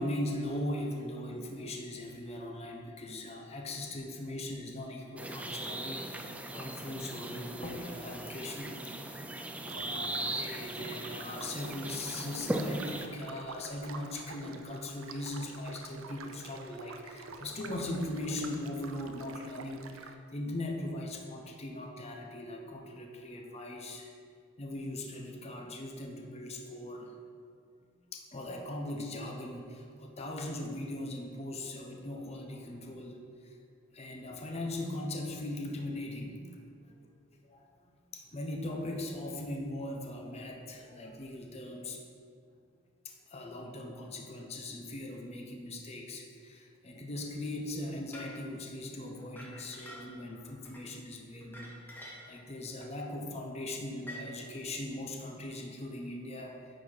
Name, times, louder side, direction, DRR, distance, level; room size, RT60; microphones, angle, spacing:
voice 1, 0.0-6.0 6.5-8.8 9.4-24.1 24.6-27.1 28.1-33.2 33.4-33.5 33.9-36.4 36.8-37.0 37.5-37.7 38.1-42.0 43.0-56.8, left 1 dB, 30° left, 1 dB, 0.7 m, -39 dB
sound 1, 5.2-13.1, right 1 dB, 5° right, 0.3 m, -38 dB
sound 2, 9.6-20.1, right 4 dB, 80° right, 0.5 m, -48 dB
sound 3, 48.1-48.4 49.2-50.3 50.6-50.8 51.4-52.4 52.8-53.0 54.0-54.2, equal, 10° left, 1.0 m, -47 dB
9.4 x 4.2 x 4.3 m, 2.2 s
head